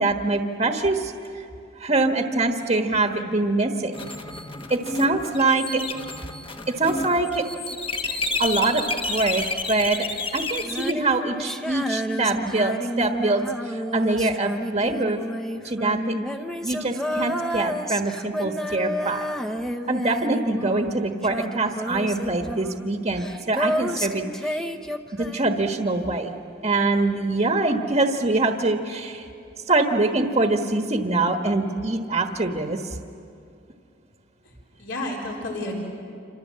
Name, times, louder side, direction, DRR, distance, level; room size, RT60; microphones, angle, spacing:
voice 1, 0.0-1.4 1.8-4.0 4.7-5.8 6.8-10.1 10.3-15.2 15.6-16.1 16.6-19.3 19.9-24.6 25.2-26.3 26.6-29.3 29.7-33.0, right 2 dB, 35° right, 4 dB, 1.3 m, -24 dB
sound 1, 3.9-10.9, left 3 dB, 25° left, 1.2 m, -31 dB
Female singing, 10.6-21.0 21.2-25.7, equal, ahead, 0.9 m, -30 dB
voice 2, 34.4-35.8, left 1 dB, 65° left, 0 dB, 4.0 m, -32 dB
28.0 x 26.5 x 7.5 m, 2.5 s
head